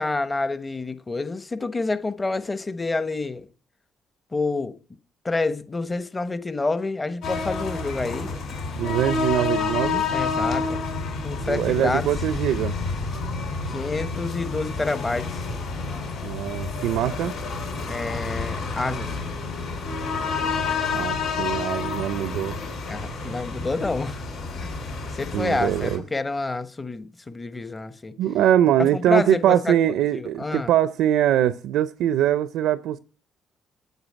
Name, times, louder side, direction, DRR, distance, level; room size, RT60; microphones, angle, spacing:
voice 1, 0.0-3.5 4.3-4.8 5.2-8.3 10.1-10.9 11.2-12.1 13.7-15.4 17.9-19.1 22.2-22.5 22.9-24.2 24.6-24.7 25.1-28.2 28.8-30.7, left 3 dB, 25° left, 1.1 m, -28 dB
sound 1, 7.2-26.0, left 4 dB, 75° left, 5.8 m, -29 dB
voice 2, 8.8-10.0 11.5-12.7 16.2-17.3 20.9-22.6 25.3-26.0 28.2-33.0, right 11 dB, 90° right, 0.5 m, -22 dB
9.1 x 8.0 x 8.5 m
cardioid pair, 90°, 0 cm